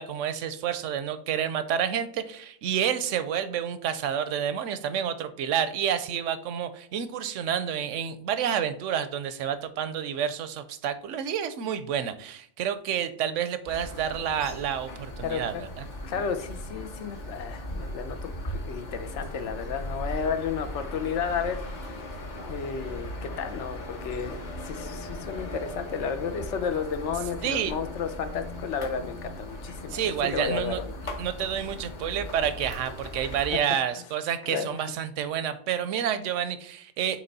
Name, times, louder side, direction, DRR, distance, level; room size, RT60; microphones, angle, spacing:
voice 1, 0.0-15.8 27.4-27.7 29.9-30.8 31.2-37.2, right 9 dB, 85° right, 12 dB, 0.9 m, -29 dB
sound 1, 13.7-33.6, left 1 dB, 40° left, 1.0 m, -38 dB
voice 2, 15.2-15.6 16.0-21.6 22.5-30.9 33.5-33.8 34.5-34.8, left 6 dB, 70° left, 9 dB, 1.0 m, -32 dB
8.8 x 3.2 x 4.0 m, 0.62 s
omnidirectional pair, 1.3 m